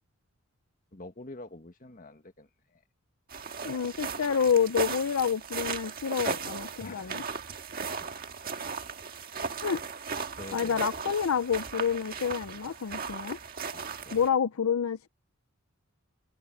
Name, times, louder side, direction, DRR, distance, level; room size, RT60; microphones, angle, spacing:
voice 1, 0.9-2.8 6.8-7.1 7.8-8.1 10.3-11.1 13.7-14.3, left 2 dB, 40° left, 1.6 m, -46 dB
sound 1, 3.3-14.3, right 5 dB, 40° right, 1.7 m, -37 dB
voice 2, 3.6-7.2 9.6-9.8 10.5-13.4 14.1-15.1, left 7 dB, 75° left, 0.5 m, -28 dB
head